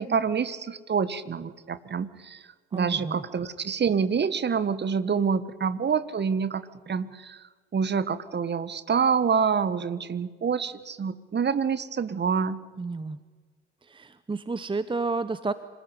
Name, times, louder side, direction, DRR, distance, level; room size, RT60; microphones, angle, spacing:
voice 1, 0.0-2.4 2.7-7.4 7.7-12.6, right 6 dB, 30° right, 15 dB, 1.5 m, -27 dB
voice 2, 2.7-3.2 12.8-13.2 13.9-15.5, right 3 dB, 15° right, 14 dB, 1.0 m, -31 dB
26.5 x 15.5 x 10.0 m, 1.4 s
figure-of-eight pair, 55°, 33 cm